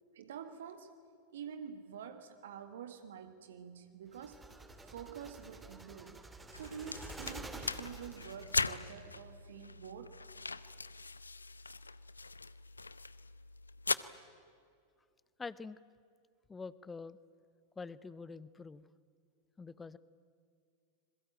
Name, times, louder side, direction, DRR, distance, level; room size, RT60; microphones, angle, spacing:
voice 1, 0.1-0.9 1.3-4.5 4.8-6.2 6.5-10.3, right 7 dB, 60° right, 9 dB, 1.6 m, -48 dB
sound 1, 4.1-8.7, right 2 dB, 10° right, 2.2 m, -49 dB
sound 2, 6.5-13.9, left 3 dB, 80° left, 0.7 m, -40 dB
voice 2, 15.4-15.8 16.5-17.2 17.8-18.8 19.6-20.0, left 4 dB, 15° left, 18 dB, 0.8 m, -45 dB
27.0 x 22.0 x 9.1 m, 2.3 s
figure-of-eight pair, 90°, 0 cm